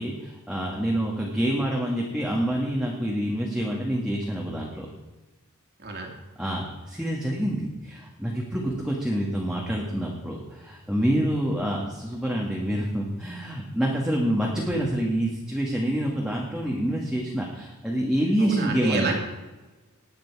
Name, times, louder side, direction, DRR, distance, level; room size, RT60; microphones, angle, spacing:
voice 1, 0.0-4.9 6.4-19.1, right 1 dB, 5° right, -3 dB, 1.7 m, -27 dB
voice 2, 5.8-6.1 18.4-19.2, right 3 dB, 50° right, 1 dB, 2.6 m, -29 dB
19.5 x 8.2 x 4.8 m, 1.2 s
head